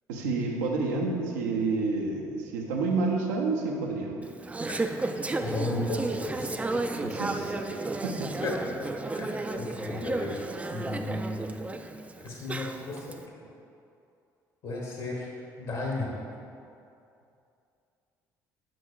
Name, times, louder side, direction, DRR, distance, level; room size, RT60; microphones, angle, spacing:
voice 1, 0.1-4.2 7.0-7.6 8.0-8.3, right 3 dB, 75° right, 1 dB, 0.7 m, -29 dB
Conversation / Chatter, 4.2-13.1, right 2 dB, 15° right, 0.3 m, -33 dB
voice 2, 5.4-6.6 8.4-8.7 9.0-10.4 10.7-11.6 12.2-13.2 14.6-15.3 15.6-16.1, left 2 dB, 55° left, -2 dB, 1.2 m, -34 dB
7.6 x 6.1 x 2.4 m, 2.6 s
figure-of-eight pair, 50°, 9 cm